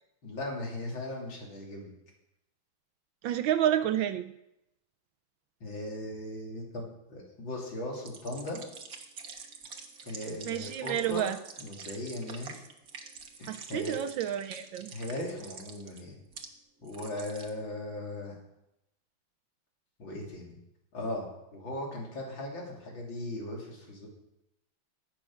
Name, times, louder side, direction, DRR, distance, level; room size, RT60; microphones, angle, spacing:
voice 1, 0.2-1.9 5.6-8.6 10.0-11.3 11.6-12.6 13.4-14.0 14.9-16.2 16.8-18.3 20.0-20.6 20.9-21.3 21.5-24.1, left 1 dB, 65° left, -1 dB, 3.8 m, -38 dB
voice 2, 3.2-4.3 10.5-11.4 13.5-14.9, right 11 dB, 75° right, 10 dB, 1.3 m, -29 dB
sound 1, 8.0-16.5 16.8-17.5, right 5 dB, 50° right, 1.6 m, -47 dB
14.5 x 8.9 x 6.3 m, 0.86 s
omnidirectional pair, 2.3 m